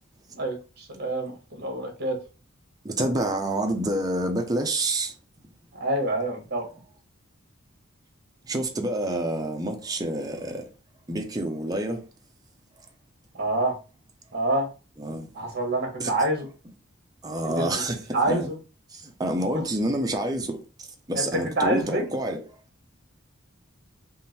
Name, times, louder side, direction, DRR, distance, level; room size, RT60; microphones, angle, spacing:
voice 1, 0.4-2.2 5.7-6.7 13.3-13.8 14.3-14.7 15.3-16.5 17.4-17.8 18.1-18.6 21.1-22.0, right 1 dB, 50° right, 1.4 m, -27 dB
voice 2, 2.8-5.1 8.5-10.7 11.1-12.0 15.0-15.3 16.0-16.1 17.2-18.0 18.3-18.5 18.9-20.6 21.1-22.4, right 1 dB, 20° right, 0.7 m, -27 dB
3.7 x 2.5 x 4.1 m
head